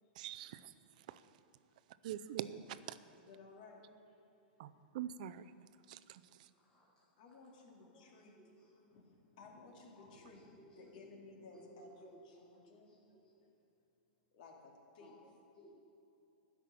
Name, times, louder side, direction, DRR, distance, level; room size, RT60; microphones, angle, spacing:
voice 1, 0.2-0.7 1.1-1.2 2.0-3.0 4.6-5.5 5.9-6.2, right 11 dB, 50° right, 14 dB, 0.5 m, -44 dB
voice 2, 3.1-4.2 7.2-8.4 8.9-10.4 10.8-13.0 14.3-15.2, left 3 dB, 55° left, 0 dB, 2.4 m, -57 dB
voice 3, 6.5-7.1 7.5-8.9 10.0-11.0 11.5-13.5 15.0-15.1 15.5-15.7, equal, 10° left, -7 dB, 1.6 m, -62 dB
12.5 x 6.0 x 8.6 m, 2.9 s
supercardioid pair, 160°, 5 cm